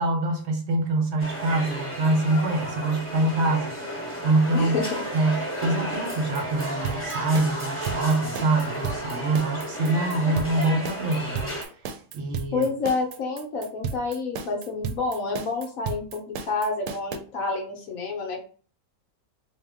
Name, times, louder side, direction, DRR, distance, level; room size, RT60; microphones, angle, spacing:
voice 1, 0.0-3.7 4.2-4.8 5.1-11.5 12.1-12.7, right 2 dB, 60° right, 0.7 m, -25 dB
sound 1, 1.2-11.6, right 1 dB, 10° left, 0.7 m, -33 dB
voice 2, 4.5-5.0 12.5-18.4, left 3 dB, 65° left, 1.0 m, -29 dB
sound 2, 5.9-17.2, right 6 dB, 85° right, 1.1 m, -34 dB
3.5 x 2.7 x 3.4 m
omnidirectional pair, 1.7 m